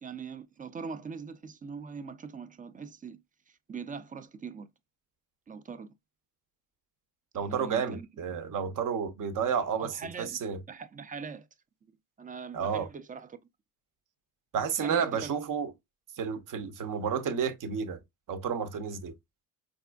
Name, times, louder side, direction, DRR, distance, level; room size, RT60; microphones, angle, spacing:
voice 1, 0.0-3.2 3.5-4.7 5.5-5.9 7.3-8.1 9.8-11.5 12.2-13.4 14.8-15.4, right 5 dB, 20° right, 0.4 m, -42 dB
voice 2, 7.3-9.9 10.2-10.6 12.5-12.9 14.5-15.7 16.2-18.0 18.3-19.1, right 7 dB, 45° right, 0.7 m, -31 dB
4.1 x 2.5 x 2.2 m
hypercardioid pair, 60°, 46 cm